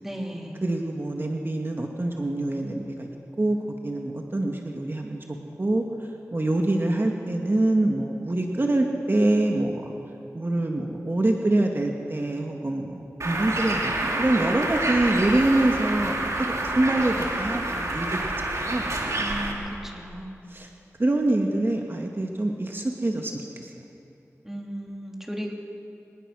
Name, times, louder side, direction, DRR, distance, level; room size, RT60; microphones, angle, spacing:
voice 1, 0.0-0.6 19.1-20.4 24.4-25.5, equal, 5° right, -1 dB, 3.7 m, -35 dB
voice 2, 0.6-3.1 3.4-5.2 5.6-5.8 6.3-9.9 10.3-16.2 16.6-18.9 20.5-20.7 21.0-23.7, right 2 dB, 45° right, 1 dB, 1.8 m, -25 dB
Bird, 13.2-19.5, right 2 dB, 70° right, 3.2 m, -28 dB
24.5 x 19.5 x 6.3 m, 2.7 s
wide cardioid pair, 50°, 5 cm